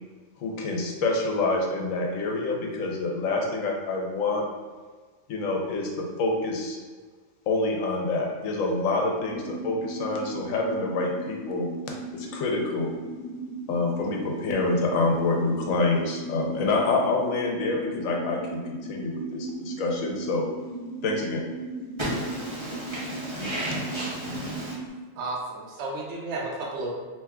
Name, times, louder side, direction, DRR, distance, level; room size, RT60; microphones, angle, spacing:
voice 1, 0.4-4.4 5.3-6.8 7.5-11.7 12.1-12.9 13.7-20.5 21.0-21.4, left 3 dB, 80° left, 0 dB, 1.0 m, -27 dB
sound 1, 9.2-24.9, right 2 dB, 45° right, 1.1 m, -37 dB
voice 2, 22.0-24.7, right 1 dB, 30° right, -8 dB, 0.6 m, -32 dB
voice 3, 25.2-26.9, right 2 dB, 65° right, -3 dB, 0.9 m, -32 dB
2.7 x 2.2 x 3.5 m, 1.4 s
omnidirectional pair, 1.4 m